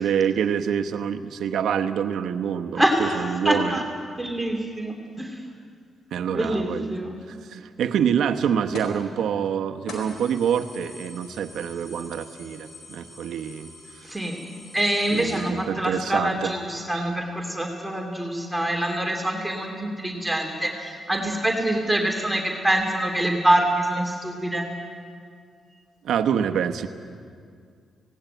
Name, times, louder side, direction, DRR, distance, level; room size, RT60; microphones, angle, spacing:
voice 1, 0.0-3.8 6.1-6.9 7.3-13.7 14.1-14.3 15.1-16.5 16.9-17.0 26.0-26.9, right 8 dB, 85° right, 7 dB, 1.0 m, -26 dB
voice 2, 2.8-3.8 4.2-5.4 6.3-7.2 14.0-14.4 14.7-24.6, right 1 dB, 5° right, 1 dB, 2.9 m, -25 dB
sound 1, 8.7-9.0 9.4-9.5 9.9-15.3, left 2 dB, 85° left, 4.3 m, -43 dB
18.0 x 17.5 x 9.0 m, 2.2 s
cardioid pair, 80°, 0 cm